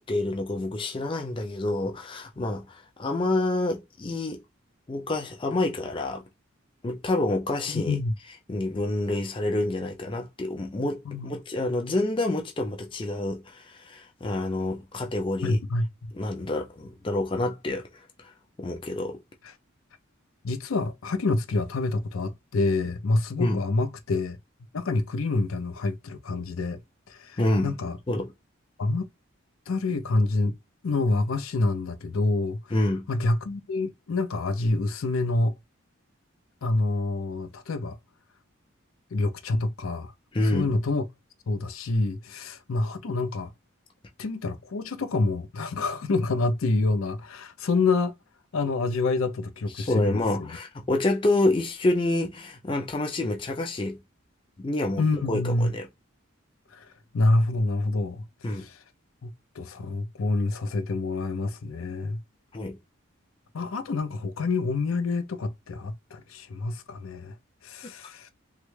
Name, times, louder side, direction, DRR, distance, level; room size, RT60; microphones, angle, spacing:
voice 1, 0.0-4.4 4.9-6.2 6.8-8.0 8.5-15.6 16.1-17.8 18.6-19.2 23.4-23.6 27.4-27.7 28.1-28.3 32.7-33.0 40.3-40.7 49.8-54.0 54.6-55.0 55.3-55.9 58.4-58.6 62.5-62.8, left 2 dB, 25° left, 0.4 m, -27 dB
voice 2, 7.7-8.1 11.1-11.3 15.4-16.1 20.4-24.4 24.7-26.8 27.1-28.0 28.8-29.1 29.7-30.6 30.8-32.6 33.1-35.5 36.6-38.0 39.1-40.1 40.4-41.0 41.5-43.5 44.2-48.1 48.5-50.5 55.0-55.7 56.7-56.9 57.1-58.2 58.5-58.8 59.2-62.2 63.5-67.3 67.6-68.3, left 3 dB, 80° left, 0.5 m, -27 dB
3.0 x 2.3 x 3.1 m
head